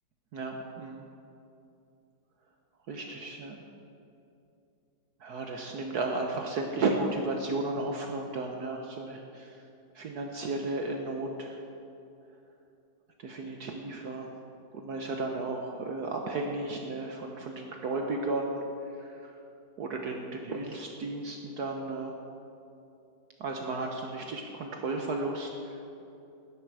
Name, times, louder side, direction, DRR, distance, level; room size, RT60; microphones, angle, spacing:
voice 1, 0.3-1.0 2.9-3.6 5.2-9.5 10.0-11.6 13.2-14.3 14.7-18.6 19.0-19.4 19.8-22.1 23.4-25.5, right 2 dB, 65° right, 2 dB, 1.4 m, -34 dB
18.5 x 10.5 x 4.8 m, 2.7 s
omnidirectional pair, 2.0 m